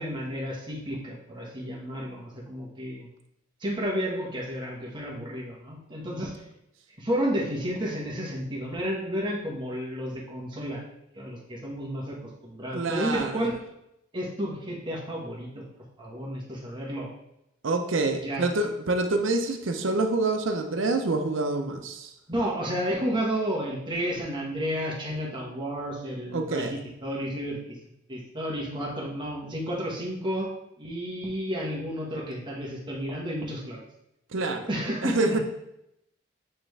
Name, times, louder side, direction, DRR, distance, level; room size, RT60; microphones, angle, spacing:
voice 1, 0.0-3.1 3.6-6.3 7.0-10.8 11.1-12.2 12.4-13.6 14.1-15.6 16.0-17.1 18.2-18.5 22.3-27.7 28.1-30.5 30.8-33.8 34.7-35.2, equal, 25° right, -3 dB, 1.4 m, -31 dB
voice 2, 12.7-13.4 17.6-22.1 26.3-26.7 34.3-34.7 35.0-35.4, right 2 dB, 80° right, 6 dB, 0.7 m, -26 dB
8.7 x 3.4 x 3.3 m, 0.83 s
head